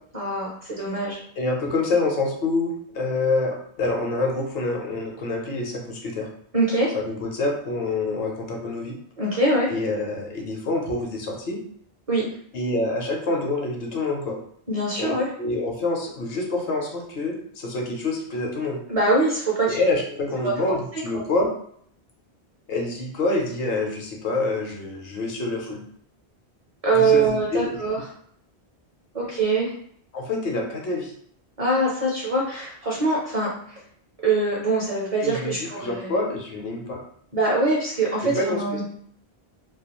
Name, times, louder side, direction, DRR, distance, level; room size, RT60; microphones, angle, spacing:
voice 1, 0.1-1.2 6.5-7.0 9.2-9.7 12.1-12.3 14.7-15.3 18.9-19.8 20.4-20.5 20.9-21.0 26.8-28.0 29.1-29.7 31.6-33.8 34.2-36.1 37.3-38.8, right 3 dB, 40° right, -4 dB, 0.6 m, -23 dB
voice 2, 1.4-6.3 6.9-9.0 9.7-11.6 12.5-14.4 15.0-18.8 19.7-21.5 22.7-25.8 26.9-27.8 30.1-31.1 35.2-37.0 38.2-38.8, left 2 dB, 65° left, 0 dB, 0.8 m, -26 dB
2.3 x 2.3 x 2.9 m, 0.64 s
omnidirectional pair, 1.1 m